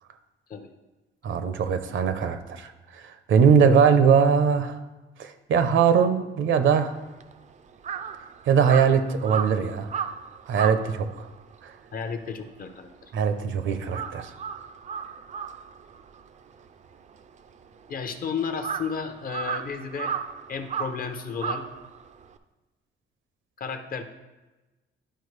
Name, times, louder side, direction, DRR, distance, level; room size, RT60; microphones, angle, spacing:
voice 1, 1.2-2.7 3.3-4.8 5.2-6.9 8.5-9.9 10.5-11.3 13.1-14.3, right 6 dB, 65° right, 9 dB, 0.7 m, -21 dB
Crow, 6.9-13.4 13.7-22.4, right 7 dB, 35° right, 0.4 m, -35 dB
voice 2, 11.9-13.1 17.9-20.1 20.5-21.7 23.6-24.0, left 6 dB, 45° left, 7 dB, 0.6 m, -33 dB
11.5 x 4.5 x 3.2 m, 1.1 s
cardioid pair, 150°, 21 cm